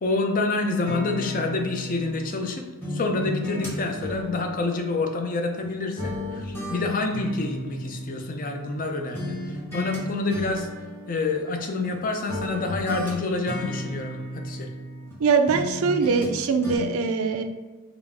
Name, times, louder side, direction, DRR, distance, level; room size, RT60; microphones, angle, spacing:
voice 1, 0.0-2.6 2.9-9.4 9.7-10.7 11.1-14.7, left 3 dB, 40° left, 4 dB, 0.4 m, -27 dB
sound 1, 0.9-2.5 2.8-5.7 6.0-8.8 9.1-10.0 10.3-11.9 12.3-15.2 15.5-16.3 16.6-16.8, left 1 dB, 10° left, 1.0 m, -34 dB
voice 2, 15.2-17.4, right 5 dB, 75° right, 7 dB, 0.4 m, -22 dB
3.8 x 2.4 x 3.5 m, 1.2 s
head